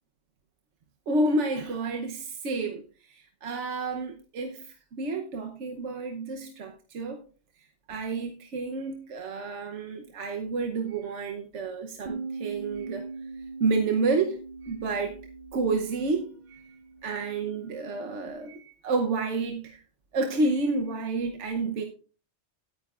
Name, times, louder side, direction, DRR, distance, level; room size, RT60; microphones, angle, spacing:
voice 1, 1.1-7.2 7.9-13.0 13.6-15.1 15.5-16.8 17.0-19.8 20.1-21.8, right 3 dB, 75° right, 1.2 m, -30 dB
Bass guitar, 12.1-18.3, right 3 dB, 55° right, 0.6 m, -41 dB
17.0 x 9.4 x 2.4 m
omnidirectional pair, 1.2 m